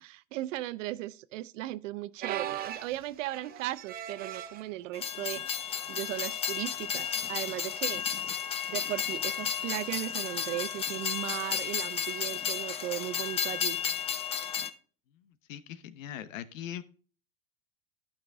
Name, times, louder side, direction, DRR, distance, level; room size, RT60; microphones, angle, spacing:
voice 1, 0.0-8.0 8.7-13.8, right 16 dB, 70° right, 0.7 m, -37 dB
sound 1, 2.2-4.7 5.4-5.7 6.0-6.1 7.0-7.3 8.9-9.0, right 11 dB, 25° right, 0.6 m, -39 dB
Train, 4.9-14.7, left 8 dB, 15° left, 0.5 m, -33 dB
voice 2, 15.1-16.8, left 10 dB, 80° left, 1.0 m, -41 dB
12.0 x 5.8 x 3.6 m
supercardioid pair, 135°, 38 cm